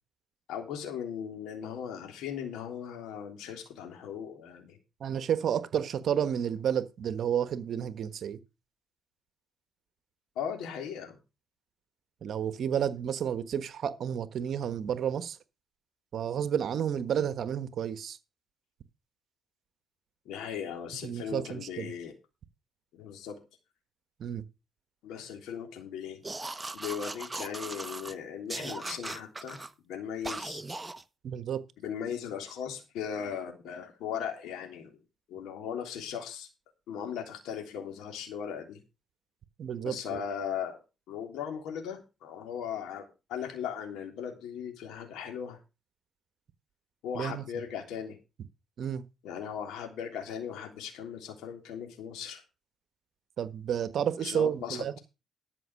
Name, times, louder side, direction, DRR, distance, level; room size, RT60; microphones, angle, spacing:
voice 1, 0.5-4.8 10.3-11.1 20.2-22.1 22.9-23.4 25.0-26.2 26.7-30.6 31.8-35.0 35.3-36.5 36.9-38.8 39.8-40.8 41.1-45.6 47.0-48.2 49.2-52.4 54.2-55.0, left 8 dB, 90° left, 3.4 m, -38 dB
voice 2, 5.0-8.4 12.2-15.4 16.1-18.2 21.0-21.9 24.2-24.4 31.2-31.6 39.6-40.2 47.1-47.4 48.8-49.0 53.4-55.0, right 9 dB, 65° right, 1.3 m, -31 dB
sound 1, 26.2-28.1 28.5-29.7 30.2-31.0, right 2 dB, 15° right, 1.0 m, -38 dB
13.0 x 6.3 x 6.4 m
cardioid pair, 90°, 0 cm